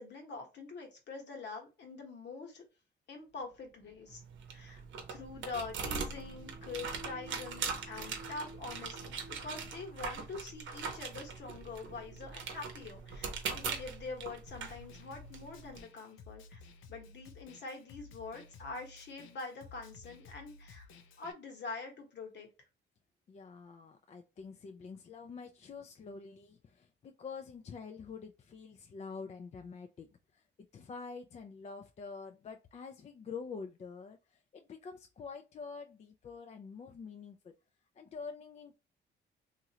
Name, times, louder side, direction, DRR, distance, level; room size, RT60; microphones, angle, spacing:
voice 1, 0.0-2.6 3.1-4.2 4.5-4.8 5.1-16.6 16.9-20.9 21.2-22.5, left 4 dB, 60° left, 1.1 m, -45 dB
sound 1, 3.3-9.8, right 3 dB, 35° right, 0.6 m, -54 dB
sound 2, 4.1-15.8, right 5 dB, 75° right, 0.8 m, -41 dB
Snare drum, 14.5-21.3, left 4 dB, 85° left, 0.5 m, -55 dB
voice 2, 23.3-30.1 30.3-37.5 38.0-38.8, left 5 dB, 35° left, 0.4 m, -47 dB
3.0 x 2.5 x 2.8 m
cardioid pair, 90°, 20 cm